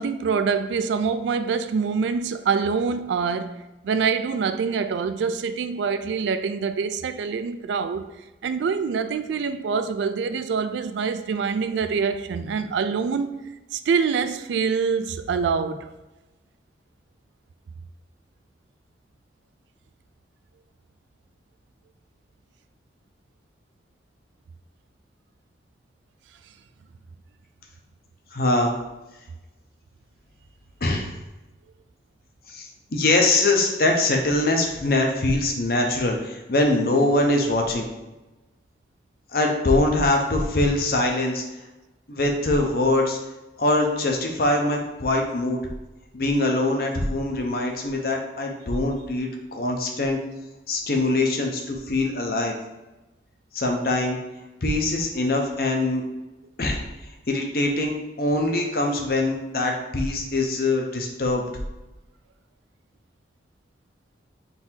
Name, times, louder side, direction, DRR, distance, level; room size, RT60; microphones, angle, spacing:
voice 1, 0.0-8.1 8.4-13.3 13.7-15.9, right 5 dB, 80° right, 0.3 m, -25 dB
voice 2, 28.3-28.8 30.8-31.1 32.5-37.9 39.3-41.4 42.1-43.2 43.6-45.6 46.1-50.2 50.7-52.5 53.5-54.2 54.6-56.0 56.6-56.8 57.3-57.9 58.2-61.4, left 2 dB, 55° left, 0.7 m, -23 dB
3.9 x 2.8 x 4.3 m
head